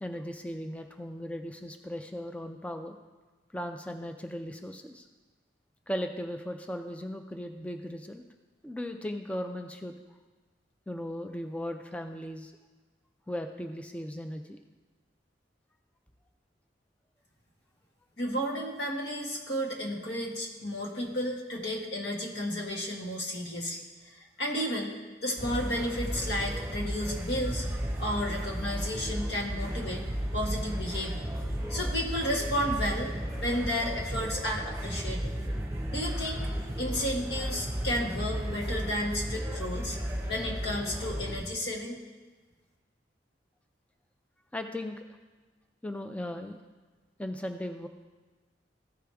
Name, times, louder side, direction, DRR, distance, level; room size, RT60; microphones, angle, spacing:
voice 1, 0.0-3.0 3.5-5.1 5.9-8.2 8.6-10.0 10.9-12.5 13.3-14.6 44.5-45.1 45.8-46.6 47.2-47.9, equal, 5° left, 5 dB, 0.3 m, -37 dB
voice 2, 18.2-23.8 24.2-27.6 28.0-30.0 30.3-31.3 31.7-33.1 33.4-35.3 35.9-36.4 36.8-40.0 40.3-42.0, equal, 65° left, -1 dB, 1.6 m, -32 dB
sound 1, 25.4-41.4, equal, 15° right, 1.2 m, -34 dB
14.5 x 4.9 x 3.4 m, 1.3 s
head